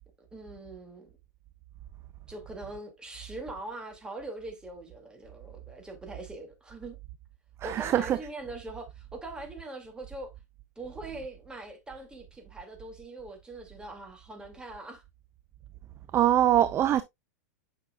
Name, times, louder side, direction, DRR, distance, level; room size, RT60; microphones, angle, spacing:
voice 1, 0.2-1.1 2.3-7.0 7.6-10.3 10.8-15.0, right 2 dB, 10° right, 2.3 m, -42 dB
voice 2, 7.6-8.2 16.1-17.0, right 11 dB, 30° right, 0.5 m, -23 dB
8.8 x 6.1 x 2.3 m
hypercardioid pair, 125°, 9 cm